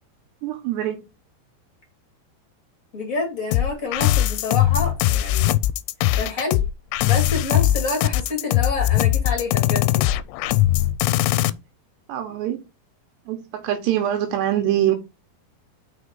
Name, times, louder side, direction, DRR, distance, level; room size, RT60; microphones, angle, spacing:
voice 1, 0.4-1.0 12.1-12.6 13.3-15.0, right 11 dB, 80° right, 3.2 m, -24 dB
voice 2, 2.9-5.5 6.2-6.6 7.0-10.1, left 3 dB, 30° left, 1.7 m, -28 dB
sound 1, 3.5-11.5, left 14 dB, 85° left, 2.6 m, -20 dB
6.1 x 4.9 x 5.4 m
omnidirectional pair, 4.9 m